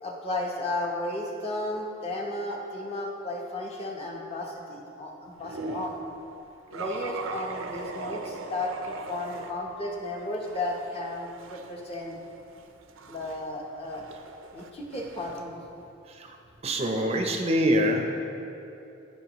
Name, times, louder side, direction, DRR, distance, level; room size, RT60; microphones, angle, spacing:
voice 1, 0.0-6.0 6.7-12.2 13.1-14.0 14.5-15.7, left 1 dB, 30° left, -1 dB, 0.9 m, -34 dB
sound 1, 5.4-6.0 6.7-9.5 9.9-15.4, right 3 dB, 80° right, 0.5 m, -40 dB
voice 2, 16.6-18.1, equal, 30° right, 3 dB, 0.5 m, -24 dB
14.5 x 5.3 x 3.0 m, 2.8 s
head